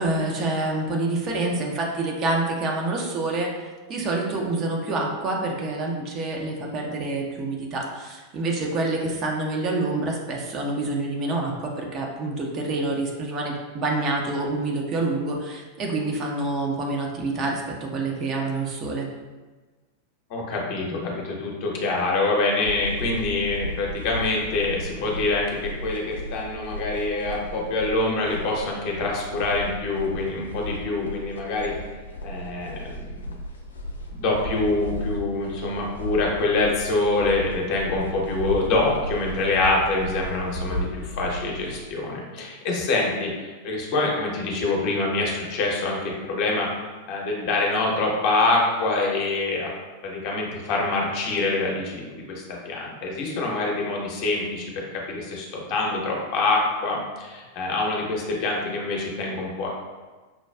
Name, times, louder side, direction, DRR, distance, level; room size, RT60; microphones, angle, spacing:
voice 1, 0.0-19.1, right 2 dB, 30° right, -1 dB, 0.6 m, -27 dB
voice 2, 20.3-31.7 32.2-33.3 34.1-46.7 47.1-49.7 50.0-59.7, left 3 dB, 45° left, -1 dB, 0.7 m, -25 dB
sound 1, 22.7-41.8, equal, 75° left, 0.4 m, -35 dB
5.8 x 2.3 x 2.2 m, 1.3 s
figure-of-eight pair, 90°, 0 cm